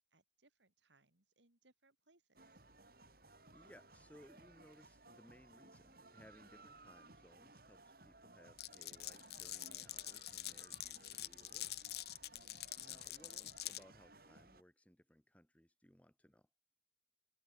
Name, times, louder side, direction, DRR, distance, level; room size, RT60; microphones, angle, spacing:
voice 1, 0.1-2.4 12.4-12.8, right 2 dB, 80° right, 3.7 m, -73 dB
sound 1, 2.4-14.6, right 2 dB, 50° right, 5.6 m, -61 dB
voice 2, 3.5-11.8 12.8-16.5, equal, 10° left, 2.0 m, -64 dB
Glass, 8.6-13.8, left 14 dB, 60° left, 1.4 m, -46 dB
head